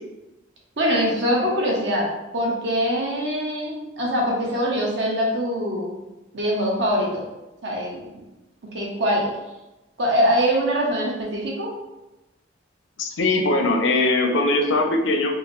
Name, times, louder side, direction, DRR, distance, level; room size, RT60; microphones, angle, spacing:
voice 1, 0.8-5.9 6.3-7.2 7.6-8.1 8.7-9.3 10.0-11.7, equal, 65° right, -3 dB, 0.9 m, -23 dB
voice 2, 13.0-15.3, left 2 dB, 75° left, 3 dB, 0.5 m, -20 dB
4.7 x 2.0 x 3.1 m, 1.0 s
head